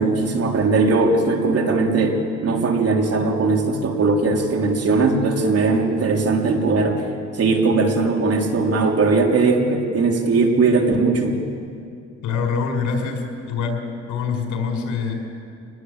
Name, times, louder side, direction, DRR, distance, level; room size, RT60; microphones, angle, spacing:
voice 1, 0.0-7.1 7.3-11.4, right 3 dB, 50° right, 1 dB, 3.8 m, -19 dB
voice 2, 12.2-13.8 14.1-15.1, left 5 dB, 80° left, 3 dB, 5.3 m, -24 dB
26.5 x 20.0 x 8.1 m, 2.4 s
cardioid pair, 90°, 30 cm